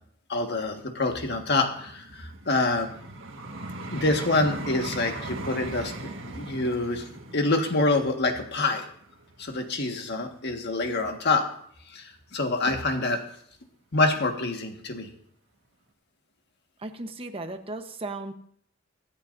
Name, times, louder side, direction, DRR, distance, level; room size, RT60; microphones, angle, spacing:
voice 1, 0.3-2.9 3.9-5.9 6.3-7.1 7.3-8.8 9.4-11.4 11.9-13.2 13.9-15.1, left 2 dB, 60° left, 4 dB, 1.6 m, -26 dB
Vehicle, 1.2-10.3 10.9-11.1, right 2 dB, 80° right, 1.6 m, -40 dB
voice 2, 16.8-18.3, right 2 dB, 30° right, 6 dB, 1.0 m, -36 dB
25.0 x 8.6 x 2.6 m, 0.65 s
head